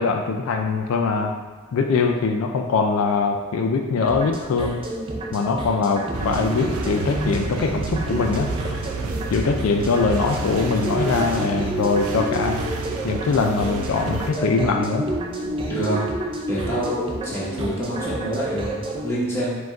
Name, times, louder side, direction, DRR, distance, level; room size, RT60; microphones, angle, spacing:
voice 1, 0.0-1.3 1.7-4.8 5.3-8.5 9.3-12.6 13.0-15.1, left 4 dB, 80° left, 4 dB, 0.4 m, -22 dB
sound 1, 4.0-19.1, right 1 dB, 25° right, 0.4 m, -30 dB
sound 2, 6.1-14.3, right 3 dB, 85° right, 0.4 m, -31 dB
voice 2, 15.7-16.0 16.4-19.6, right 1 dB, 10° left, -8 dB, 1.0 m, -27 dB
5.0 x 2.3 x 3.6 m, 1.4 s
head